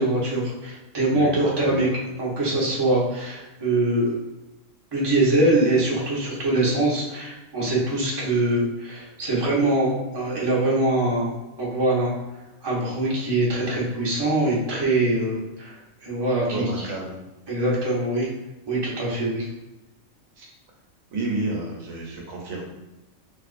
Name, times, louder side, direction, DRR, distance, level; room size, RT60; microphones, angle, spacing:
voice 1, 0.0-1.9 2.2-4.1 4.9-12.1 12.6-16.8 17.5-18.3 18.7-19.5, right 2 dB, 20° right, -5 dB, 0.8 m, -23 dB
voice 2, 1.1-1.8 16.5-17.2 20.4-20.5 21.1-22.6, right 2 dB, 85° right, -1 dB, 1.2 m, -31 dB
3.7 x 2.7 x 2.5 m, 1.0 s
omnidirectional pair, 1.4 m